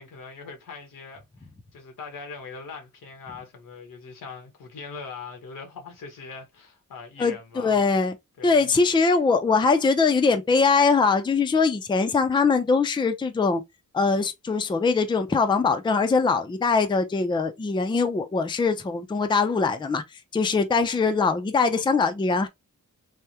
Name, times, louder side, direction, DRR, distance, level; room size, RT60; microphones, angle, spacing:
voice 1, 0.0-1.5 1.7-7.8 8.4-8.7, left 4 dB, 90° left, 1.2 m, -41 dB
voice 2, 7.2-8.1 8.4-13.6 13.9-20.0 20.3-22.5, left 4 dB, 15° left, 0.4 m, -22 dB
3.4 x 2.1 x 2.8 m
wide cardioid pair, 135°, 32 cm